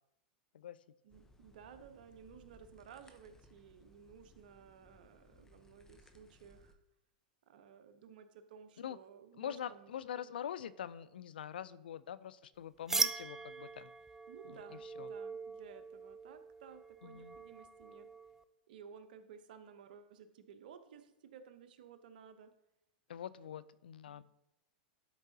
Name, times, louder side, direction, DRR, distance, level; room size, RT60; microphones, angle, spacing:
voice 1, 1.0-6.8 7.5-9.9 14.3-18.1 18.7-22.5 24.1-24.2, right 7 dB, 70° right, 9 dB, 0.8 m, -56 dB
sound 1, 1.1-6.7, left 1 dB, 10° left, 0.8 m, -64 dB
voice 2, 9.4-13.9 14.5-15.1 17.0-17.4 23.1-24.2, left 9 dB, 85° left, 18 dB, 0.3 m, -44 dB
sound 2, 12.9-18.4, right 3 dB, 10° right, 0.3 m, -40 dB
11.0 x 4.6 x 2.8 m, 0.85 s
hypercardioid pair, 115°, 5 cm